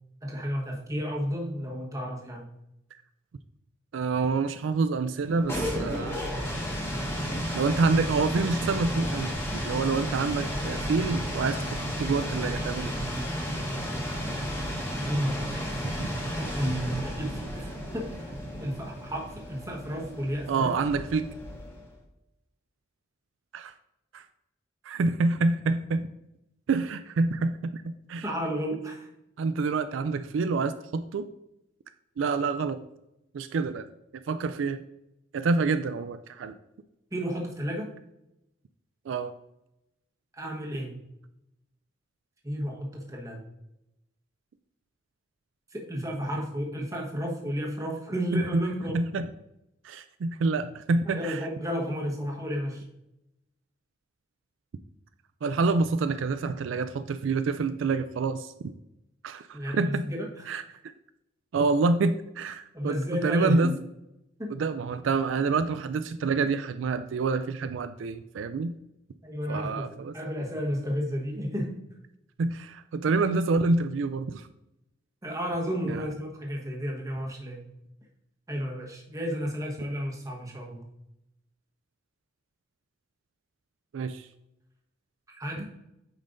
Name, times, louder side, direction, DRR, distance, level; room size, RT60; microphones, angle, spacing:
voice 1, 0.2-2.5 15.1-15.5 16.2-18.1 18.6-21.0 28.2-29.1 37.1-37.9 40.3-41.0 42.4-43.4 45.7-49.0 51.1-52.8 59.5-60.6 62.7-63.8 64.4-64.5 69.2-71.8 75.2-77.6 78.5-80.9 85.3-85.6, equal, 15° right, -1 dB, 1.3 m, -32 dB
voice 2, 3.9-6.2 7.5-11.6 12.0-12.9 20.5-21.3 23.5-23.7 24.1-24.2 24.8-26.1 26.7-28.3 29.4-31.3 32.2-32.8 33.3-33.9 34.3-34.8 35.3-36.6 39.1-39.3 48.3-48.7 48.9-49.3 49.8-51.4 55.4-58.7 59.2-60.1 60.5-60.6 61.5-63.7 64.5-68.7 69.5-70.1 72.4-74.5 75.9-76.0 83.9-84.3, right 4 dB, 75° right, 10 dB, 0.4 m, -27 dB
sound 1, 5.2-21.9, equal, 15° left, 1.4 m, -33 dB
8.6 x 5.4 x 2.6 m, 0.86 s
head